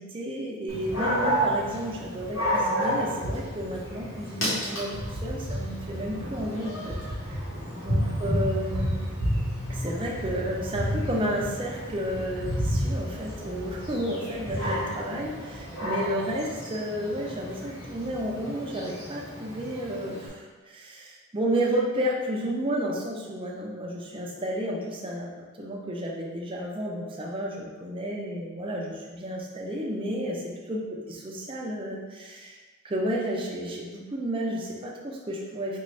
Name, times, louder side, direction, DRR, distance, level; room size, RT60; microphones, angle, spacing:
voice 1, 0.0-7.0 7.2-7.4 7.7-8.9 9.7-25.3 25.6-30.8 31.1-32.6 32.8-35.8, equal, 25° right, -2 dB, 0.5 m, -32 dB
Dog, 0.7-20.3, equal, 70° left, 1.2 m, -31 dB
4.4 x 2.6 x 3.2 m, 1.3 s
head